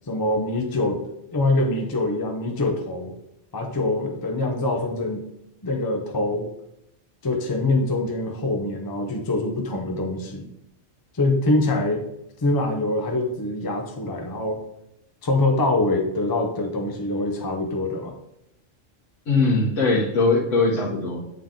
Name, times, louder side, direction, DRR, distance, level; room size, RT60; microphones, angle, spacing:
voice 1, 0.1-1.0 1.3-3.2 3.5-5.2 5.6-6.5 7.2-10.5 11.1-12.1 12.4-14.6 15.2-18.1, left 2 dB, 30° left, 2 dB, 0.4 m, -24 dB
voice 2, 19.3-21.2, left 3 dB, 80° left, -6 dB, 1.4 m, -20 dB
8.6 x 3.8 x 3.7 m, 0.82 s
omnidirectional pair, 1.3 m